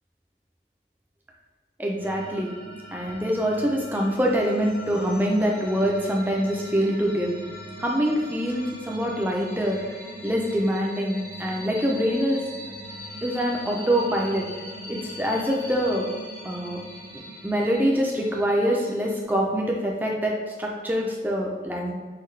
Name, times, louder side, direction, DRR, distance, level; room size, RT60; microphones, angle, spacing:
voice 1, 1.8-2.5 2.9-7.3 7.8-9.8 10.2-12.4 13.2-14.4 14.9-16.1 16.4-16.8 17.4-21.9, equal, 10° right, -1 dB, 0.5 m, -25 dB
sound 1, 2.0-19.2, equal, 40° left, 0.9 m, -41 dB
5.7 x 2.4 x 3.2 m, 1.5 s
head